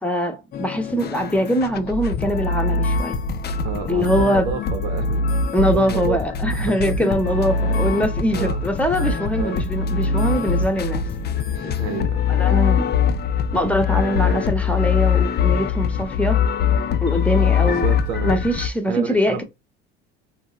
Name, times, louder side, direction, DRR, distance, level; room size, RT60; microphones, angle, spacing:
voice 1, 0.0-3.2 3.9-4.5 5.5-11.1 11.6-11.7 12.3-12.9 13.5-16.4 17.0-17.9 18.2-19.4, equal, 5° left, 0.8 m, -22 dB
sound 1, 0.5-18.7, left 5 dB, 35° left, 0.4 m, -22 dB
voice 2, 3.6-5.3 5.6-6.2 6.5-7.2 8.3-8.6 9.4-9.6 11.8-12.2 17.7-18.4 18.9-19.4, right 6 dB, 80° right, 0.7 m, -29 dB
3.6 x 2.0 x 2.4 m
supercardioid pair, 80°, 30 cm